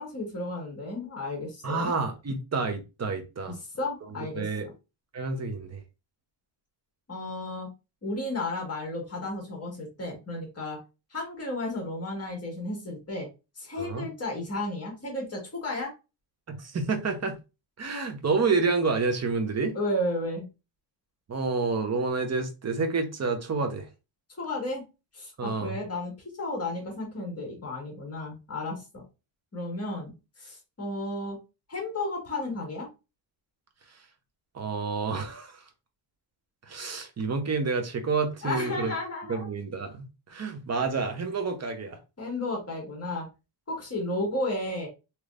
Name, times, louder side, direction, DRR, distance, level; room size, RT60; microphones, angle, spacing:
voice 1, 0.0-1.9 3.8-4.4 7.1-7.7 8.0-10.8 11.1-13.3 13.5-15.9 19.7-20.5 24.4-24.8 25.1-26.1 26.4-29.0 29.5-30.1 30.4-31.4 31.7-32.9 38.4-39.5 42.2-43.2 43.7-44.9, left 2 dB, 30° left, 1.5 m, -33 dB
voice 2, 1.6-3.5 4.3-4.7 5.1-5.8 13.8-14.1 16.5-17.3 17.8-19.7 21.3-23.9 25.4-25.8 34.5-35.6 36.7-38.9 39.3-42.0, right 4 dB, 35° right, 0.7 m, -29 dB
3.4 x 2.9 x 2.5 m
wide cardioid pair, 125°, 48 cm